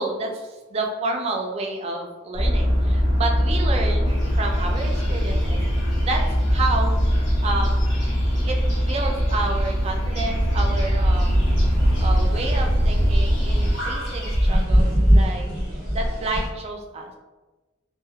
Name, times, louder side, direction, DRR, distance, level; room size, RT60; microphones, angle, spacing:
voice 1, 0.0-5.6 6.0-7.0 7.4-7.9 8.4-11.4 12.0-15.4 15.9-17.1, right 2 dB, 30° right, 2 dB, 0.3 m, -30 dB
sound 1, 2.3-13.7, equal, 50° left, 0.5 m, -21 dB
sound 2, 4.0-14.6, equal, 70° left, 1.0 m, -35 dB
sound 3, 11.1-16.5, equal, 90° left, 1.3 m, -23 dB
2.2 x 2.0 x 2.7 m, 1.2 s
head